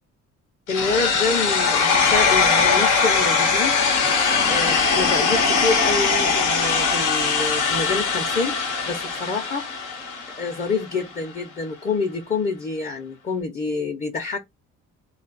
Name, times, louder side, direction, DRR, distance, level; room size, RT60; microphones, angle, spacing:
sound 1, 0.7-10.7, left 5 dB, 85° left, 0.9 m, -21 dB
voice 1, 0.7-3.8 4.4-8.6 8.9-9.7 10.4-14.4, left 4 dB, 30° left, 0.6 m, -27 dB
2.3 x 2.0 x 3.8 m
cardioid pair, 90°, 30 cm